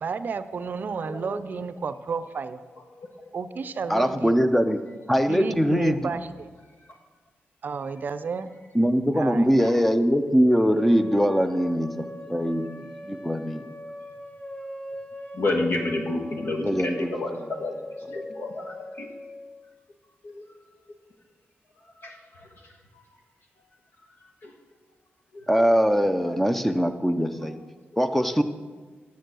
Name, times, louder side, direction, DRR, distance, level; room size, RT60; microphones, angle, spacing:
voice 1, 0.0-2.6 3.3-4.4 5.3-6.5 7.6-8.5 9.1-9.5, right 5 dB, 50° right, 12 dB, 0.5 m, -32 dB
voice 2, 1.1-1.4 9.6-9.7 15.3-17.8 18.1-19.1 20.2-20.4 22.0-22.2 24.4-24.5 26.3-26.4, left 2 dB, 70° left, 2 dB, 1.5 m, -29 dB
voice 3, 3.9-4.8 5.1-6.0 8.7-13.7 16.6-17.4 25.5-27.6 28.0-28.4, equal, 5° left, 9 dB, 0.5 m, -22 dB
sound 1, 10.6-19.6, left 1 dB, 30° left, 1.0 m, -41 dB
9.2 x 7.0 x 6.2 m, 1.4 s
wide cardioid pair, 145°, 4 cm